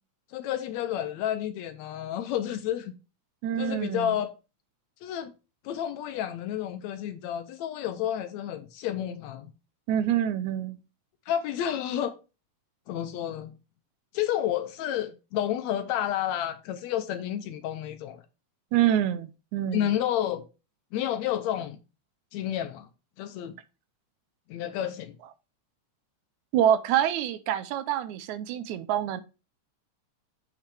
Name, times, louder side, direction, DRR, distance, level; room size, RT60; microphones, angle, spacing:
voice 1, 0.3-3.0 3.6-4.3 5.0-5.3 5.6-9.5 11.3-12.1 12.9-13.5 14.1-18.2 19.7-20.4 20.9-21.8 22.3-22.9 23.2-23.6 24.5-25.2, left 11 dB, 80° left, 1.7 m, -30 dB
voice 2, 3.4-4.2 9.9-10.8 18.7-19.9 26.5-29.2, right 10 dB, 80° right, 2.0 m, -26 dB
7.4 x 5.9 x 3.3 m
omnidirectional pair, 3.5 m